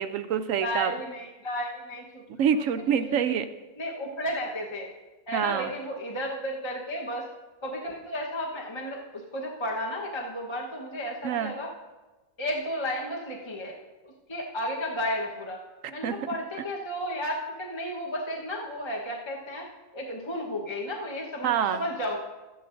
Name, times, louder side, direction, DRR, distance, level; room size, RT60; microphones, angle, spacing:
voice 1, 0.0-0.9 2.4-3.5 5.3-5.7 11.2-11.6 16.0-16.2 21.4-21.8, right 8 dB, 70° right, 10 dB, 0.8 m, -26 dB
voice 2, 0.6-2.2 3.0-3.4 3.8-4.9 5.3-7.3 7.6-11.7 12.4-13.8 14.3-15.6 15.9-19.7 19.9-22.2, equal, 20° left, -2 dB, 1.1 m, -33 dB
14.0 x 11.0 x 2.6 m, 1.2 s
omnidirectional pair, 1.6 m